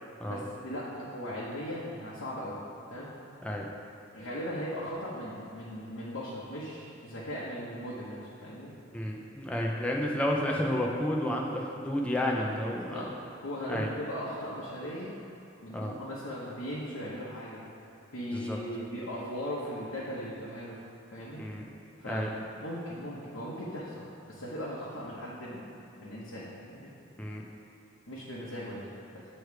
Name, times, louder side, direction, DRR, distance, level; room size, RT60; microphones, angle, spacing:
voice 1, 0.3-2.6 2.9-3.1 4.1-8.7 12.3-12.5 12.9-13.1 13.4-15.1 15.6-17.6 18.1-20.8 21.1-21.4 22.0-22.3 22.6-25.6 26.0-26.9 28.1-28.9 29.1-29.3, equal, 80° left, -8 dB, 1.0 m, -38 dB
voice 2, 8.9-13.1 13.7-13.9 15.7-16.0 18.3-18.6 21.4-21.6 22.1-22.3 27.2-27.5, left 1 dB, 5° left, -2 dB, 0.5 m, -31 dB
8.3 x 3.2 x 4.7 m, 2.8 s
head